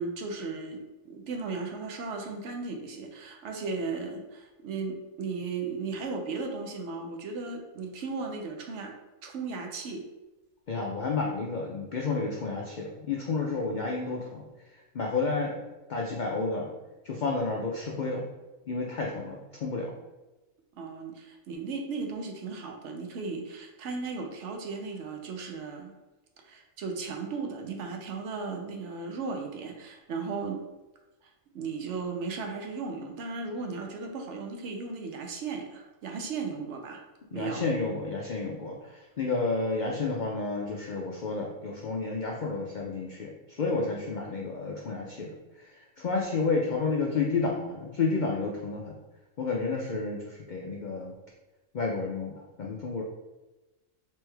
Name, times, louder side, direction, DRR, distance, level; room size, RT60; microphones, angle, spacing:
voice 1, 0.0-8.9 9.2-10.0 20.7-25.9 26.4-30.6 31.2-37.0 37.3-37.6, right 4 dB, 65° right, 3 dB, 0.8 m, -36 dB
voice 2, 10.7-15.6 15.9-16.7 17.0-18.3 18.7-19.9 37.3-48.9 49.4-51.1 51.7-53.0, left 3 dB, 90° left, -1 dB, 0.4 m, -31 dB
3.4 x 3.1 x 3.3 m, 1.1 s
omnidirectional pair, 1.4 m